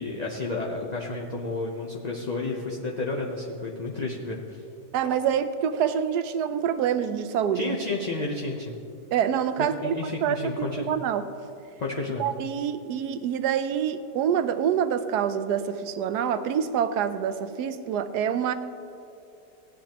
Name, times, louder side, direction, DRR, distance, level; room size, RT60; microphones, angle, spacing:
voice 1, 0.0-4.6 7.5-8.7 9.6-11.0 11.8-12.3, left 3 dB, 40° left, -2 dB, 0.6 m, -31 dB
voice 2, 4.9-7.8 9.1-11.3 12.2-18.5, right 8 dB, 75° right, 11 dB, 1.1 m, -26 dB
17.0 x 10.0 x 3.0 m, 2.7 s
omnidirectional pair, 1.9 m